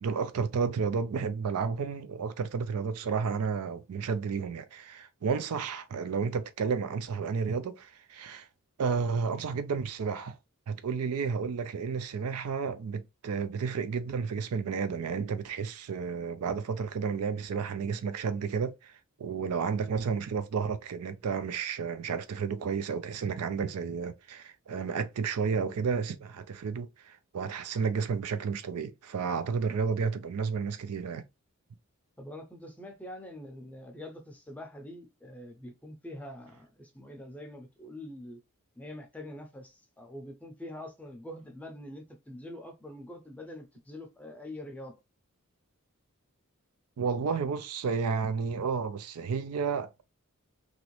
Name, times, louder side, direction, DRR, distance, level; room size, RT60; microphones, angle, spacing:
voice 1, 0.0-8.5 8.8-10.4 10.7-18.9 19.2-31.2 47.0-50.0, right 5 dB, 90° right, 0.4 m, -32 dB
voice 2, 32.2-38.4 38.8-44.9, left 1 dB, 5° left, 0.5 m, -44 dB
3.0 x 2.6 x 3.0 m
head